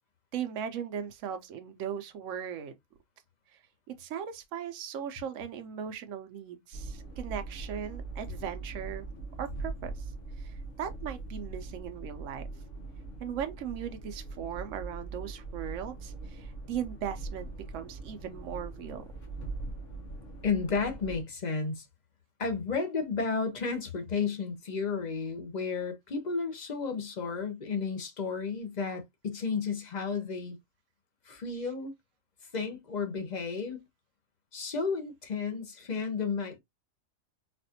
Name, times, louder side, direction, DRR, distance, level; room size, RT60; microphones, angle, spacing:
voice 1, 0.3-2.8 4.0-9.0 9.4-10.0 10.4-12.4 13.2-19.0 31.5-31.7, right 8 dB, 70° right, 1.0 m, -38 dB
sound 1, 6.7-21.2, right 3 dB, 65° left, 1.6 m, -41 dB
voice 2, 20.4-21.9 22.4-30.6 31.3-31.9 32.5-33.8 34.5-36.6, left 5 dB, 40° left, 0.7 m, -32 dB
4.2 x 2.5 x 2.7 m
omnidirectional pair, 1.4 m